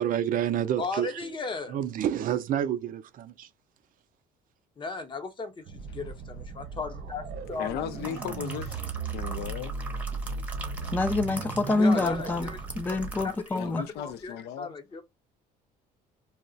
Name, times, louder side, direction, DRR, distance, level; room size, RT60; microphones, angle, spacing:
voice 1, 0.0-1.3 1.7-3.5, right 10 dB, 55° right, 0.4 m, -28 dB
voice 2, 0.8-1.8 4.8-7.8 11.8-12.6 12.9-15.0, left 4 dB, 30° left, 0.7 m, -36 dB
sound 1, 5.7-13.3, right 5 dB, 70° right, 0.9 m, -37 dB
voice 3, 7.4-8.8 9.1-9.7 11.6-12.0 13.6-14.7, left 10 dB, 75° left, 0.5 m, -37 dB
sound 2, 7.7-13.7 14.1-14.2, right 2 dB, 10° right, 0.7 m, -43 dB
voice 4, 10.9-13.9, left 2 dB, 10° left, 0.3 m, -26 dB
2.3 x 2.0 x 3.8 m
cardioid pair, 110°, 17 cm